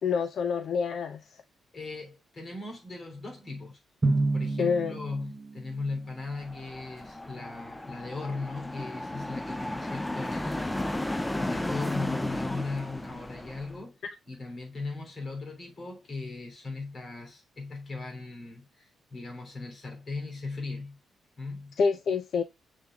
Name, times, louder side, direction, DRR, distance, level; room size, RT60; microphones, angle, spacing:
voice 1, 0.0-1.4 4.6-4.9 21.8-22.4, left 5 dB, 60° left, 0.7 m, -27 dB
voice 2, 1.7-3.8 4.3-14.0 14.3-21.0 21.4-21.8, left 3 dB, 35° left, 3.2 m, -38 dB
Drum, 4.0-6.2, right 2 dB, 15° right, 1.0 m, -29 dB
sound 1, 6.3-13.8, left 1 dB, 10° left, 0.5 m, -34 dB
7.4 x 6.7 x 2.4 m
cardioid pair, 135°, 0 cm